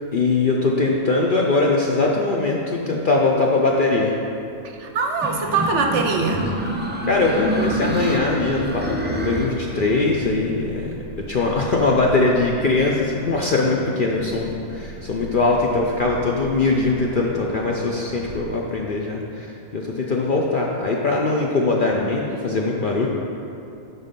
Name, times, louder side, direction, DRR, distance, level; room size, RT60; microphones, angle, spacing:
voice 1, 0.1-4.1 7.0-11.0 11.3-23.1, left 3 dB, 55° left, -2 dB, 0.6 m, -21 dB
sound 1, 4.7-18.5, right 1 dB, 85° left, 2.5 m, -40 dB
voice 2, 4.7-6.5, right 4 dB, 65° right, 3 dB, 0.8 m, -22 dB
sound 2, 5.2-10.0, right 1 dB, 15° right, 0.4 m, -27 dB
9.9 x 4.0 x 5.2 m, 2.7 s
omnidirectional pair, 1.5 m